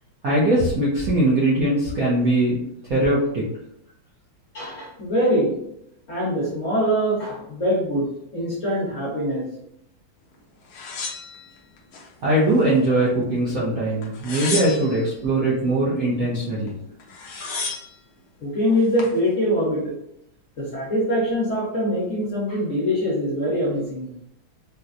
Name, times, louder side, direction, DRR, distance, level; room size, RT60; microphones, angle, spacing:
voice 1, 0.2-2.6 2.8-3.4 12.2-16.7, right 1 dB, 65° right, -7 dB, 0.9 m, -21 dB
voice 2, 4.5-5.5 6.1-8.1 8.3-9.4 17.4-17.5 18.4-19.9 20.6-24.1, equal, 45° left, -6 dB, 1.2 m, -23 dB
sound 1, 10.7-12.1 12.5-13.3 14.0-15.1 16.7-16.8 17.0-18.0 18.7-19.2, left 4 dB, 65° left, 0.9 m, -32 dB
4.1 x 2.1 x 2.5 m, 0.77 s
omnidirectional pair, 2.1 m